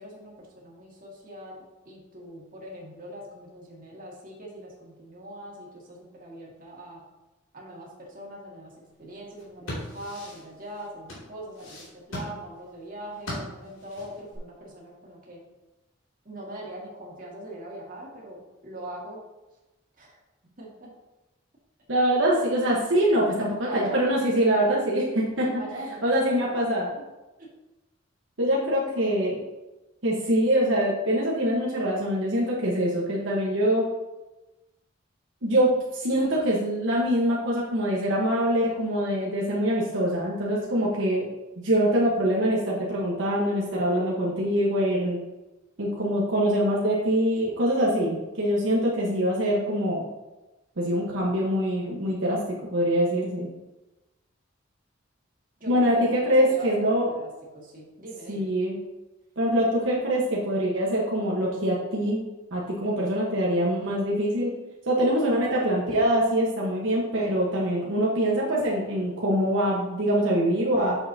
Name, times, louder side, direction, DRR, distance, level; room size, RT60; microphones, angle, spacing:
voice 1, 0.0-7.0 7.5-7.9 8.1-8.7 9.0-15.4 16.3-19.2 20.0-20.1 20.6-20.9 23.6-24.1 25.6-26.2 27.4-27.5 55.6-56.7 57.0-57.3 57.5-58.5, right 1 dB, 45° right, -3 dB, 2.0 m, -41 dB
sound 1, 9.3-14.4, left 1 dB, 90° left, 2.7 m, -39 dB
voice 2, 21.9-25.6 26.0-26.9 28.4-29.4 30.0-33.9 35.4-41.3 41.6-45.2 45.8-50.0 50.8-52.4 52.7-53.5 55.7-57.1 58.3-58.8 59.4-62.2 62.5-64.5 64.9-71.0, equal, 75° right, -4 dB, 1.3 m, -24 dB
8.1 x 6.5 x 2.8 m, 1.0 s
head